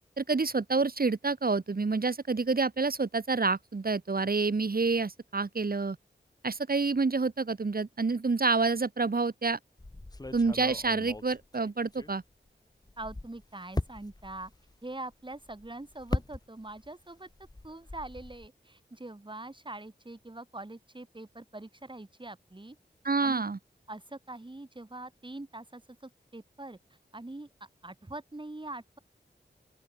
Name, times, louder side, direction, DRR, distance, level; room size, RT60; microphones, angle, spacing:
voice 1, 0.2-6.0 6.4-9.6 10.3-12.2 23.0-23.6, right 4 dB, 50° right, 1.8 m, -28 dB
sound 1, 9.8-12.5 12.8-16.9 17.2-18.5, left 2 dB, 20° left, 1.1 m, -39 dB
voice 2, 13.0-14.5 14.8-17.3 17.6-22.8 23.2-23.4 23.9-29.0, right 2 dB, 25° right, 3.3 m, -43 dB
open air
cardioid pair, 45°, 19 cm